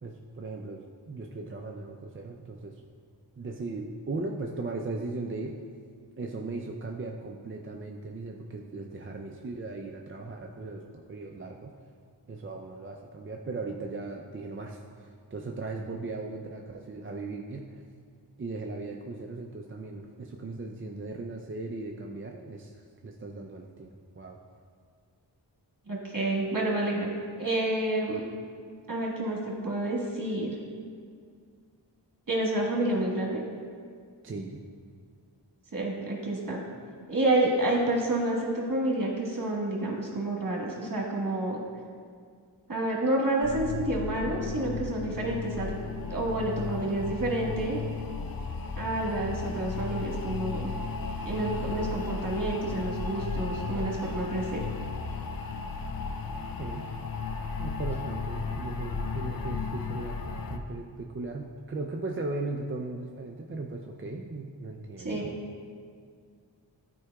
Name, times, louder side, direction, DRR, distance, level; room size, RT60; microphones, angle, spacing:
voice 1, 0.0-2.8 3.4-5.6 6.2-11.7 12.3-17.7 18.4-24.4 34.2-34.6 56.0-56.1 56.6-56.9 57.6-60.2 60.5-65.4, right 3 dB, 30° right, 1 dB, 0.4 m, -38 dB
voice 2, 25.9-27.1 27.4-28.2 28.9-30.6 32.3-33.5 35.7-36.6 37.1-41.6 42.7-45.8 46.1-47.8 48.8-50.7 51.2-54.6 65.0-65.4, right 1 dB, 45° right, -2 dB, 1.5 m, -29 dB
sound 1, 43.4-60.6, left 5 dB, 50° left, 0.5 m, -34 dB
11.0 x 4.7 x 2.3 m, 2.1 s
wide cardioid pair, 55°, 44 cm